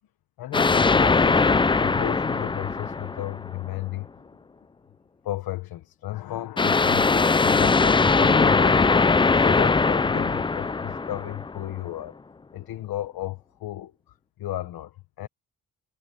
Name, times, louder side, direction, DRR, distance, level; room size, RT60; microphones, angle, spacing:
voice 1, 0.4-4.2 5.2-8.9 9.4-12.2 12.5-15.3, left 14 dB, 85° left, 1.2 m, -34 dB
sound 1, 0.5-3.7 6.6-11.7, left 4 dB, 15° left, 0.4 m, -21 dB
cardioid pair, 120°, 35 cm